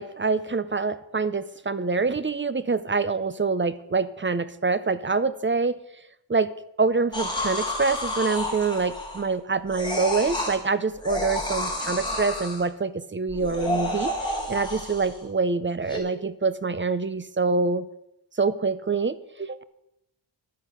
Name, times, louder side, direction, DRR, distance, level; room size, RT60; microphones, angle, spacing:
voice 1, 0.0-5.8 6.3-6.5 6.8-17.9 18.4-19.6, right 4 dB, 25° right, 15 dB, 0.6 m, -26 dB
sound 1, 7.1-9.3 9.7-10.6 11.0-12.7 13.3-15.2 15.9-16.0, left 1 dB, 10° left, 3.9 m, -30 dB
11.5 x 9.8 x 6.2 m, 0.83 s
wide cardioid pair, 120°, 46 cm